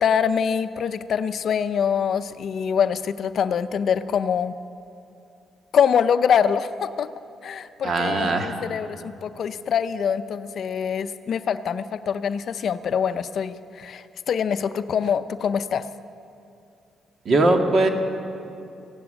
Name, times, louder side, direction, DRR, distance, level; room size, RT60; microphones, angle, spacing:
voice 1, 0.0-4.6 5.7-7.1 7.4-15.9, left 7 dB, 60° left, 12 dB, 0.5 m, -24 dB
voice 2, 7.8-8.5 17.3-17.9, right 2 dB, 50° right, 4 dB, 1.7 m, -20 dB
16.0 x 9.7 x 8.8 m, 2.7 s
cardioid pair, 90°, 0 cm